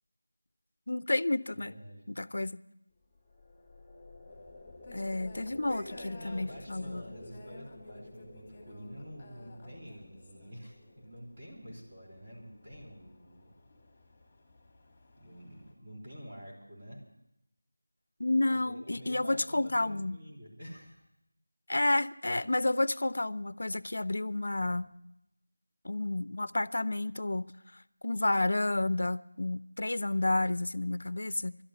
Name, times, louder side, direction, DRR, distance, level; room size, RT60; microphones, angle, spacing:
voice 1, 0.9-1.7 2.1-2.5 4.9-7.0 18.2-20.2 21.7-24.9 25.8-27.4 28.0-31.6, left 2 dB, 60° left, 0.5 m, -30 dB
voice 2, 1.5-2.0 5.7-13.5 15.2-17.0 18.5-21.1, equal, 30° right, 3.3 m, -48 dB
sound 1, 2.9-14.4, left 2 dB, 5° right, 2.2 m, -54 dB
sound 2, 4.3-15.7, left 2 dB, 15° left, 2.3 m, -55 dB
12.0 x 11.0 x 9.4 m
figure-of-eight pair, 175°, 0 cm